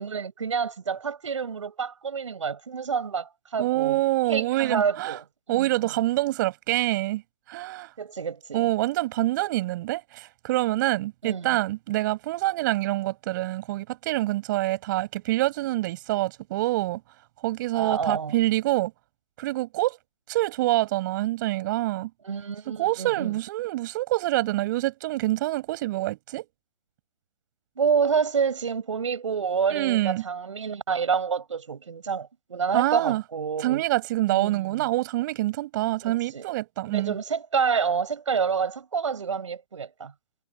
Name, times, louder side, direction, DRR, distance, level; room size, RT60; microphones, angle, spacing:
voice 1, 0.0-4.0 4.3-5.9 8.0-8.7 11.2-11.6 17.7-18.3 22.2-23.4 27.8-33.8 34.3-34.9 36.0-36.5 36.8-40.1, right 6 dB, 70° right, 7.0 m, -28 dB
voice 2, 3.6-5.2 5.5-7.2 7.5-7.9 8.5-17.0 17.4-18.9 19.4-20.0 20.3-22.1 22.8-26.5 29.7-30.2 32.7-33.2 33.6-37.2, right 17 dB, 40° right, 5.7 m, -26 dB
figure-of-eight pair, 135°, 17 cm